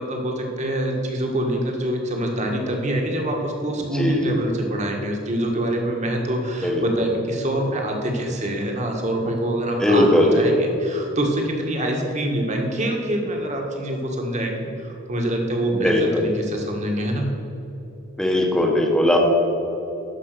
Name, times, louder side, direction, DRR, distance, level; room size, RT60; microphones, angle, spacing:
voice 1, 0.0-17.3, right 1 dB, 35° right, 1 dB, 1.6 m, -25 dB
voice 2, 9.8-10.4 15.7-16.0 18.2-19.2, left 1 dB, 5° left, 0 dB, 1.2 m, -18 dB
12.0 x 5.4 x 6.8 m, 3.0 s
head